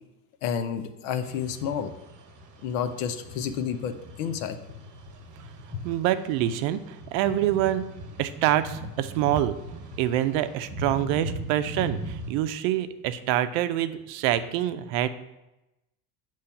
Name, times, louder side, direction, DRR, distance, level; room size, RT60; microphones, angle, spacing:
voice 1, 0.4-1.9 2.6-3.9 4.2-4.6 5.7-5.9, left 7 dB, 80° left, 9 dB, 0.7 m, -30 dB
sound 1, 1.2-12.3, equal, 40° right, 1.0 m, -40 dB
voice 2, 5.8-6.8 7.1-7.9 8.2-9.6 10.0-15.1, right 12 dB, 70° right, 11 dB, 0.6 m, -26 dB
6.8 x 3.1 x 5.7 m, 0.95 s
cardioid pair, 130°, 44 cm